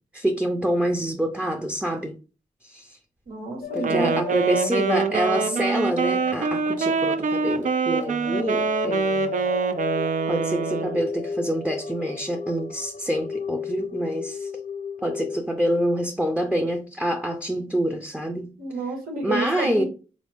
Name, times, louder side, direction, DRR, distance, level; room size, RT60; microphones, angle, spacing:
voice 1, 0.1-2.1 2.6-3.0 3.7-9.4 10.3-14.5 15.0-18.5 19.2-19.8, equal, 5° right, 0.5 m, -26 dB
voice 2, 3.3-4.1 18.6-19.8, right 3 dB, 85° right, 1.6 m, -30 dB
sound 1, 3.6-15.4, left 6 dB, 60° left, 0.6 m, -34 dB
Wind instrument woodwind instrument, 3.8-11.0, right 5 dB, 60° right, 0.4 m, -25 dB
4.1 x 2.6 x 3.5 m
cardioid pair, 80°, 15 cm